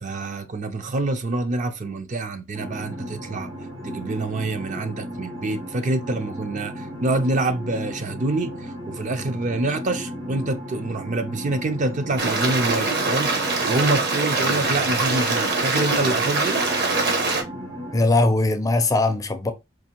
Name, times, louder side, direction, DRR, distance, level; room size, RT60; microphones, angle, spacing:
voice 1, 0.0-3.5 3.8-13.3 13.7-16.6, right 2 dB, 40° right, 0.5 m, -26 dB
sound 1, 2.5-18.1, equal, 80° right, 1.9 m, -35 dB
Stream, 12.2-17.4, right 3 dB, 55° right, 1.0 m, -23 dB
voice 2, 17.9-19.5, left 2 dB, 20° left, 0.5 m, -20 dB
4.6 x 2.4 x 2.8 m
head